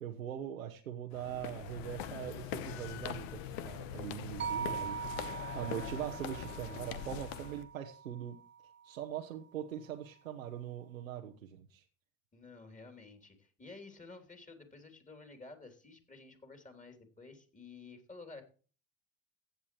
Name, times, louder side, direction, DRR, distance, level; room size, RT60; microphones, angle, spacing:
voice 1, 0.0-3.4 3.6-8.4 8.8-11.8, right 10 dB, 85° right, 2 dB, 1.0 m, -42 dB
sound 1, 1.1-7.6, left 9 dB, 60° left, 1.1 m, -42 dB
sound 2, 4.4-8.6, right 7 dB, 30° right, 1.1 m, -42 dB
voice 2, 12.3-18.4, left 3 dB, 20° left, 6 dB, 3.2 m, -52 dB
16.0 x 8.3 x 3.1 m, 0.37 s
hypercardioid pair, 65°, 39 cm